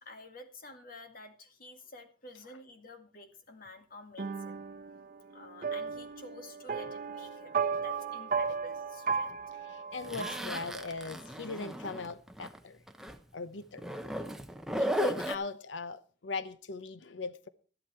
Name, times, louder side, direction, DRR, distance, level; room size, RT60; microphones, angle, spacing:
voice 1, 0.0-4.7 5.2-9.4, left 2 dB, 50° left, 2.1 m, -50 dB
sound 1, 4.2-11.2, right 5 dB, 50° right, 0.8 m, -36 dB
voice 2, 9.7-12.8 13.3-13.8 14.8-17.5, left 4 dB, 90° left, 0.7 m, -39 dB
Zipper (clothing), 10.0-12.6 12.9-13.2 13.8-15.3, equal, 5° right, 0.9 m, -35 dB
12.5 x 12.0 x 4.3 m
head